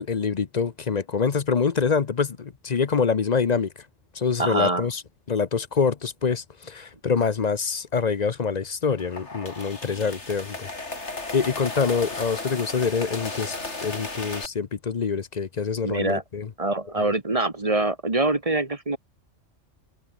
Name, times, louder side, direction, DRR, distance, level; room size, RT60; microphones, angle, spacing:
voice 1, 0.0-3.7 4.1-5.0 5.3-10.7 11.0-13.6 13.8-16.5, left 5 dB, 40° left, 0.7 m, -25 dB
voice 2, 4.4-4.9 15.8-16.2 16.6-19.0, right 2 dB, 30° right, 1.6 m, -24 dB
sound 1, 8.9-14.5, left 2 dB, 60° left, 4.1 m, -34 dB
omnidirectional pair, 1.3 m